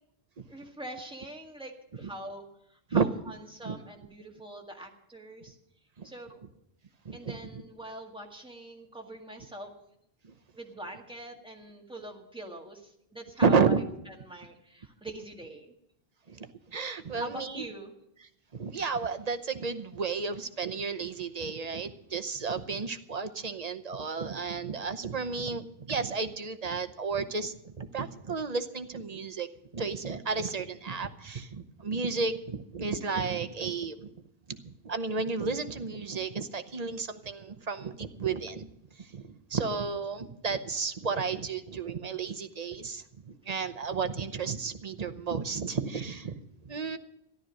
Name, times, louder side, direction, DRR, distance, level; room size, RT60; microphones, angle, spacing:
voice 1, 0.5-2.5 2.9-5.6 6.0-6.4 7.1-9.7 10.5-15.7 17.2-17.9, right 1 dB, 5° right, 1 dB, 1.8 m, -43 dB
voice 2, 7.0-7.6 10.2-10.3 13.4-13.9 16.3-17.6 18.5-29.5 29.7-34.1 34.5-38.7 39.0-47.0, right 5 dB, 40° right, 10 dB, 0.9 m, -32 dB
14.0 x 12.0 x 6.3 m, 0.78 s
omnidirectional pair, 1.0 m